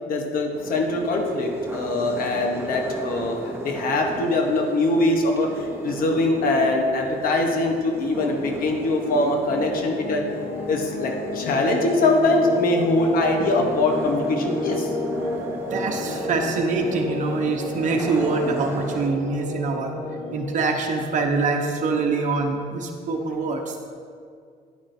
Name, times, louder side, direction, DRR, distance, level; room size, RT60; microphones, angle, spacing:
voice 1, 0.0-10.2 10.7-14.9, left 2 dB, 60° left, 2 dB, 1.0 m, -22 dB
sound 1, 0.5-19.1, right 3 dB, 15° right, 1.0 m, -36 dB
sound 2, 9.5-20.6, left 2 dB, 30° left, 0.9 m, -32 dB
voice 2, 15.7-19.9 20.3-23.8, right 3 dB, 50° right, 1 dB, 1.0 m, -24 dB
9.4 x 8.7 x 2.6 m, 2.2 s
cardioid pair, 110°, 17 cm